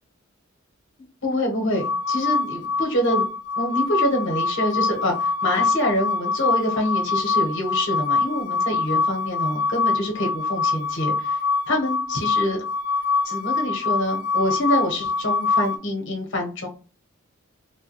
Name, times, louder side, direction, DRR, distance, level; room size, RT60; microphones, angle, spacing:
voice 1, 1.2-3.3 3.6-11.4 11.7-12.6 13.2-16.7, left 1 dB, 65° left, 2 dB, 0.9 m, -26 dB
sound 1, 1.7-15.8, left 4 dB, 85° left, 0.3 m, -24 dB
3.3 x 2.2 x 2.9 m, 0.36 s
head